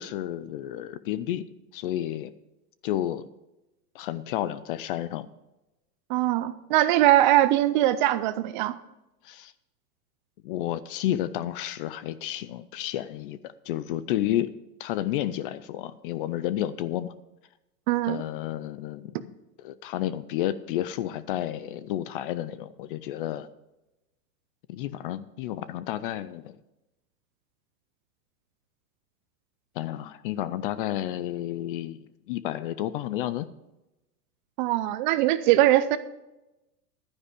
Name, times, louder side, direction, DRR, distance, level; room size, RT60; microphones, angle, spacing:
voice 1, 0.0-1.4 1.7-2.3 2.8-3.3 3.9-5.3 9.2-9.5 10.4-14.5 14.8-17.1 18.1-19.3 19.6-23.5 24.7-26.6 29.8-32.0 32.3-33.5, left 12 dB, 35° left, 16 dB, 0.4 m, -31 dB
voice 2, 6.1-8.8 17.9-18.2 34.6-36.0, right 14 dB, 35° right, 14 dB, 0.4 m, -21 dB
11.5 x 9.8 x 5.0 m, 0.97 s
hypercardioid pair, 125°, 49 cm